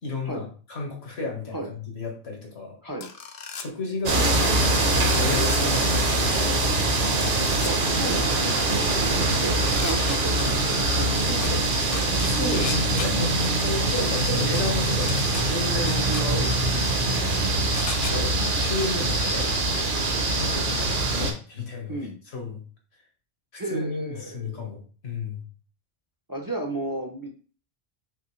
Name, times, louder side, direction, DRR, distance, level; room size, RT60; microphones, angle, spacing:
voice 1, 0.0-2.8 3.5-7.4 8.7-9.6 11.3-11.4 12.2-17.3 18.1-19.9 20.3-22.6 23.5-25.5, left 3 dB, 80° left, 1 dB, 1.6 m, -33 dB
sound 1, 3.0-3.7 5.1-5.6 7.2-7.7 9.3-10.4 11.4-11.5 11.9-13.1 14.6-14.7 15.1-15.4 15.9-16.2 17.7-18.1, left 5 dB, 50° left, 0.5 m, -35 dB
sound 2, 4.1-21.3, right 2 dB, 55° right, 1.0 m, -23 dB
voice 2, 7.6-8.8 9.2-11.7 18.1-18.3 21.1-21.3 21.9-22.2 23.6-24.6 26.3-27.3, right 2 dB, 25° right, 3 dB, 0.5 m, -34 dB
5.6 x 3.0 x 3.1 m, 0.39 s
omnidirectional pair, 1.1 m